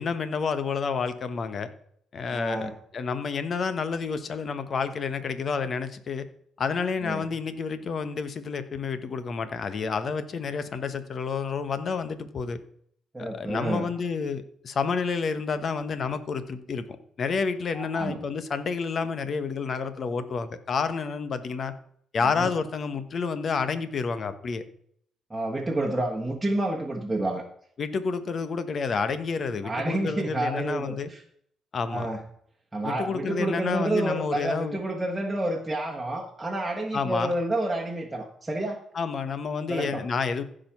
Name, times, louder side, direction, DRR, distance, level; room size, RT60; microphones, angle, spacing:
voice 1, 0.0-1.7 2.1-6.2 6.6-12.6 13.2-16.8 17.2-21.7 22.1-24.6 27.8-31.1 31.7-32.1 32.8-34.8 36.9-37.3 38.9-40.4, left 5 dB, 50° left, 1.2 m, -29 dB
voice 2, 2.3-2.7 7.0-7.3 13.1-13.9 17.7-18.2 22.4-22.5 25.3-27.4 29.6-31.2 31.9-32.2 32.7-38.8 39.7-40.0, right 1 dB, 10° right, 1.6 m, -29 dB
15.0 x 5.1 x 6.0 m
cardioid pair, 90°, 0 cm